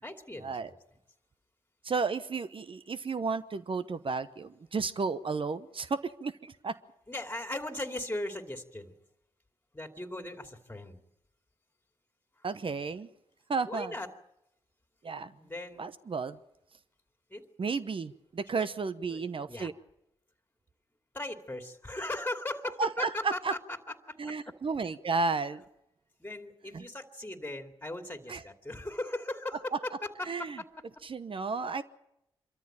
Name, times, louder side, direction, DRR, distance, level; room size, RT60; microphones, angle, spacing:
voice 1, 0.0-0.8 7.1-8.9 9.7-11.0 13.6-14.1 15.3-15.9 17.3-17.5 18.6-18.7 19.1-19.2 19.5-19.7 21.1-23.8 24.1-24.2 26.2-30.5, left 1 dB, 15° left, 2.6 m, -38 dB
voice 2, 1.8-6.8 12.4-13.1 13.5-13.9 15.0-15.3 15.8-16.4 17.6-19.7 22.8-23.5 24.2-25.6 26.7-26.9 28.3-28.4 30.3-30.6 31.0-31.8, right 4 dB, 50° right, 1.0 m, -33 dB
24.5 x 13.5 x 8.8 m
supercardioid pair, 45°, 12 cm